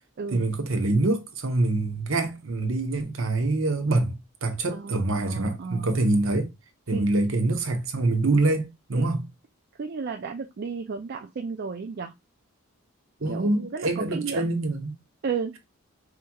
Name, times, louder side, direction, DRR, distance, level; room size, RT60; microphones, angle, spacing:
voice 1, 0.3-6.5 6.9-9.2 13.2-14.9, right 2 dB, 65° right, 0.8 m, -25 dB
voice 2, 4.7-5.9 6.9-7.1 8.9-9.1 9.8-12.1 13.3-14.4 15.2-15.6, right 5 dB, 45° right, 0.4 m, -33 dB
4.8 x 2.9 x 2.3 m
head